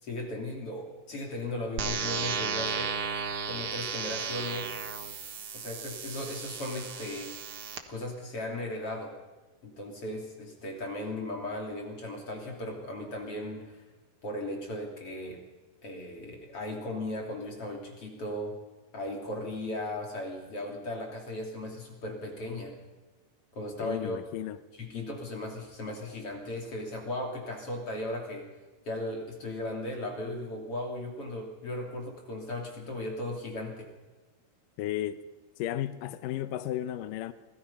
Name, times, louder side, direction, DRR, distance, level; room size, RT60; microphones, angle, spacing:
voice 1, 0.0-2.9 3.5-4.8 5.5-7.3 7.9-9.1 9.6-13.8 14.2-15.4 15.8-18.6 18.9-22.8 23.5-24.2 24.8-28.5 28.9-33.9, left 1 dB, 35° left, 3.4 m, -37 dB
sound 1, 1.8-7.8, right 6 dB, 75° right, 1.2 m, -34 dB
voice 2, 23.8-24.6 34.8-35.2 35.6-37.3, left 12 dB, 80° left, 2.0 m, -33 dB
26.5 x 19.0 x 5.6 m
omnidirectional pair, 4.9 m